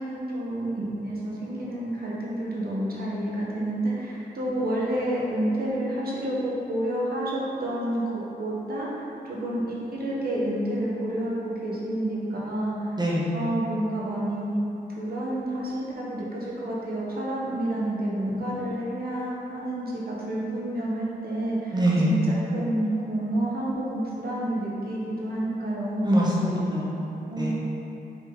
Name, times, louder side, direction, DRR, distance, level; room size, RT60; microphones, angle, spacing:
voice 1, 0.0-9.6 9.9-13.0 13.3-14.5 15.0-26.1 27.3-27.5, right 1 dB, 60° right, -5 dB, 1.4 m, -29 dB
voice 2, 13.0-13.3 21.7-22.2 26.0-27.5, equal, 25° right, -6 dB, 0.9 m, -24 dB
7.2 x 3.9 x 3.9 m, 2.8 s
wide cardioid pair, 150°, 18 cm